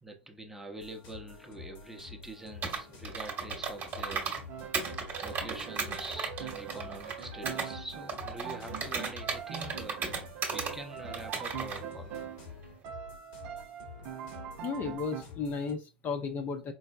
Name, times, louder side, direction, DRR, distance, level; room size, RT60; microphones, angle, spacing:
voice 1, 0.0-4.3 5.2-10.3 10.5-12.4, right 2 dB, 5° right, 0.7 m, -45 dB
sound 1, 0.8-15.8, left 5 dB, 50° left, 1.3 m, -49 dB
Computer keyboard, 2.6-4.4 4.7-7.7 8.1-10.7 11.1-11.8, right 5 dB, 30° right, 1.1 m, -36 dB
Piano, 4.5-12.5 12.8-15.2, right 9 dB, 50° right, 0.6 m, -43 dB
voice 2, 14.6-16.7, left 5 dB, 30° left, 0.6 m, -34 dB
4.6 x 2.1 x 2.3 m
figure-of-eight pair, 80°, 6 cm